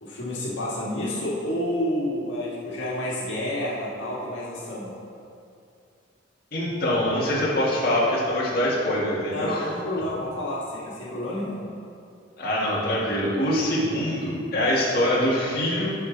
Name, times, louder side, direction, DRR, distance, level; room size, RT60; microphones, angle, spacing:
voice 1, 0.0-5.0 9.3-11.6, left 1 dB, 85° left, -6 dB, 1.7 m, -29 dB
voice 2, 6.5-9.7 12.4-15.9, left 1 dB, 55° left, -6 dB, 1.7 m, -24 dB
12.0 x 4.8 x 3.9 m, 2.5 s
head